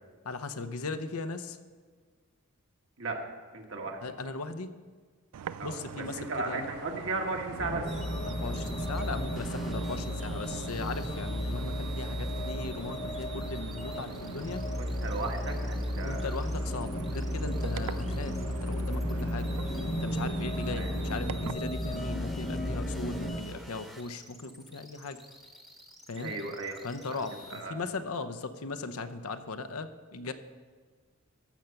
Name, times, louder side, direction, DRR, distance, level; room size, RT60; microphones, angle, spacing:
voice 1, 0.2-1.6 4.0-4.7 5.6-6.7 8.2-14.6 16.0-19.6 19.9-25.2 26.1-26.3 26.8-30.3, left 3 dB, 75° left, 10 dB, 0.7 m, -38 dB
voice 2, 3.5-4.0 5.6-5.7 6.0-7.9 14.7-16.3 20.7-20.9 26.2-27.2 27.5-27.8, right 3 dB, 60° right, 2 dB, 1.6 m, -36 dB
sound 1, 5.3-21.5, right 8 dB, 90° right, 0.3 m, -43 dB
sound 2, 7.6-23.4, equal, 30° left, 0.8 m, -34 dB
sound 3, 7.9-27.6, right 1 dB, ahead, 1.0 m, -50 dB
14.5 x 6.6 x 5.8 m, 1.6 s
head